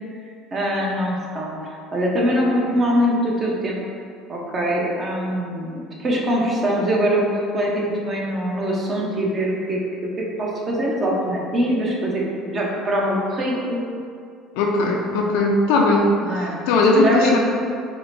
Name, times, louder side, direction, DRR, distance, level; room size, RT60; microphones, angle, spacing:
voice 1, 0.5-1.5 1.9-3.8 4.3-13.8 16.2-16.6 16.9-17.4, equal, 35° right, -3 dB, 0.7 m, -23 dB
voice 2, 14.6-16.1 16.7-17.4, left 2 dB, 85° left, 0 dB, 0.4 m, -18 dB
4.8 x 2.1 x 2.6 m, 2.3 s
supercardioid pair, 95°, 0 cm